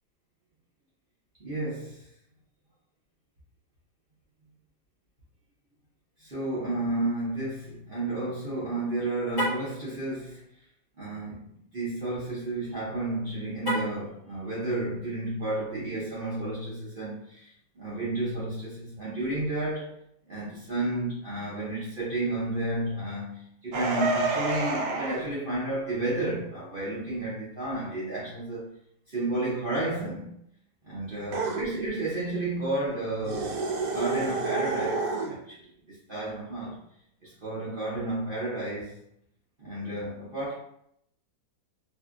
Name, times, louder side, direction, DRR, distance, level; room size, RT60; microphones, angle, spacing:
voice 1, 1.4-2.1 6.2-10.4 11.0-19.9 20.3-28.7 29.1-30.3 30.8-33.6 33.9-36.8 37.2-39.0 39.6-40.5, right 2 dB, 50° right, -8 dB, 0.7 m, -32 dB
Car, 9.3-9.7 13.6-14.1, equal, 25° left, 0.5 m, -30 dB
sound 1, 23.7-25.3 31.3-31.7 33.2-35.3, right 3 dB, 75° right, 1.2 m, -29 dB
3.1 x 2.8 x 2.4 m, 0.72 s
omnidirectional pair, 1.9 m